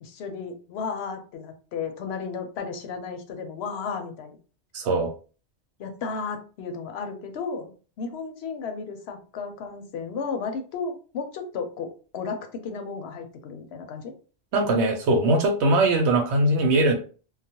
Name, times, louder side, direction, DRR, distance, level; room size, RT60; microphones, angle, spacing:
voice 1, 0.0-4.4 5.8-14.1, left 5 dB, 75° left, 5 dB, 0.8 m, -34 dB
voice 2, 4.7-5.1 14.5-16.9, right 2 dB, 85° right, 3 dB, 0.9 m, -21 dB
2.3 x 2.1 x 2.8 m, 0.38 s
omnidirectional pair, 1.1 m